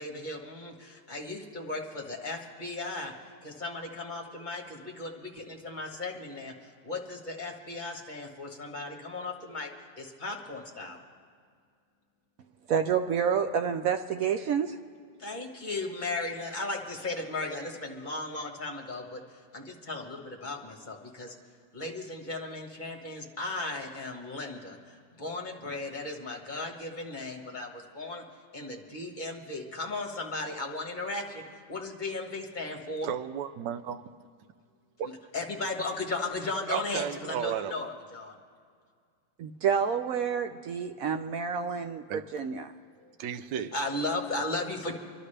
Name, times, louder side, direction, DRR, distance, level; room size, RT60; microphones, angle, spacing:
voice 1, 0.0-3.1 3.4-11.0 15.2-21.3 21.7-28.2 28.5-33.1 35.0-38.4 43.0-43.1 43.7-45.0, left 2 dB, 30° left, 1 dB, 1.4 m, -36 dB
voice 2, 12.7-14.8 39.4-42.7, right 7 dB, 65° right, 7 dB, 0.9 m, -29 dB
voice 3, 33.0-34.0 35.0-35.1 36.7-37.9 42.1-42.2 43.2-43.7, right 9 dB, 85° right, 9 dB, 1.3 m, -33 dB
26.5 x 12.0 x 3.3 m, 2.1 s
omnidirectional pair, 1.9 m